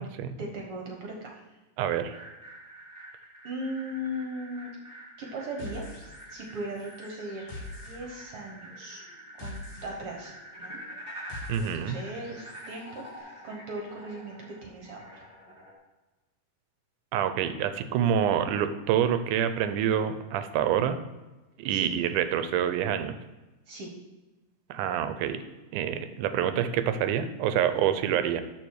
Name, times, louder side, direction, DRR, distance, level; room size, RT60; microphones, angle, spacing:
voice 1, 0.4-1.6 3.4-4.7 5.2-5.9 6.3-7.4 7.8-9.0 9.4-10.3 10.6-10.8 11.5-15.2 21.7-21.9 23.7-23.9, right 1 dB, 55° right, 0 dB, 1.7 m, -38 dB
voice 2, 1.8-2.2 11.5-12.0 17.1-21.0 21.6-23.2 24.7-25.4 25.7-28.4, right 9 dB, 80° right, 10 dB, 2.1 m, -27 dB
sound 1, 2.1-15.7, right 1 dB, ahead, 2.3 m, -46 dB
sound 2, 5.6-6.5 6.8-12.8, left 2 dB, 60° left, 3.2 m, -45 dB
13.5 x 4.4 x 4.7 m, 1.1 s
omnidirectional pair, 3.7 m